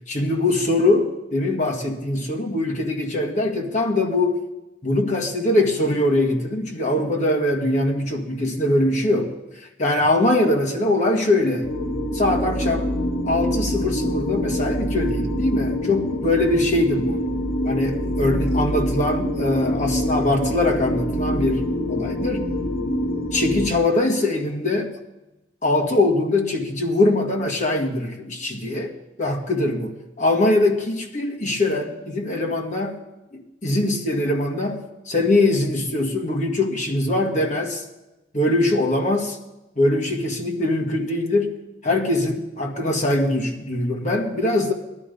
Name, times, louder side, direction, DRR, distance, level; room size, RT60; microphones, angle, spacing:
voice 1, 0.1-4.4 4.8-9.4 9.8-11.7 12.1-12.9 13.3-17.3 17.6-22.5 23.3-24.9 25.6-29.9 30.2-33.0 33.3-37.8 38.3-39.4 39.8-41.5 41.8-44.7, left 2 dB, 40° left, 2 dB, 1.9 m, -22 dB
sound 1, 11.6-23.7, equal, 65° left, 4.7 m, -25 dB
18.0 x 12.5 x 5.4 m, 1.0 s
head